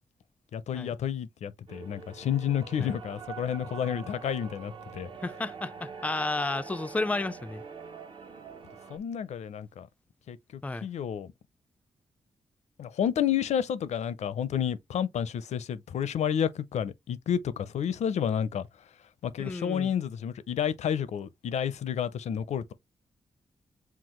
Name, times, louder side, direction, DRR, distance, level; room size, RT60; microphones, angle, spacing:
voice 1, 0.5-5.1 8.9-9.9 10.3-11.3 12.8-18.7 19.2-22.7, left 9 dB, 80° left, 0.5 m, -30 dB
sound 1, 1.7-9.0, right 5 dB, 50° right, 0.9 m, -44 dB
voice 2, 5.2-7.6 10.6-10.9 19.4-19.9, left 2 dB, 10° left, 0.3 m, -32 dB
5.9 x 2.4 x 3.0 m
cardioid pair, 100°, 11 cm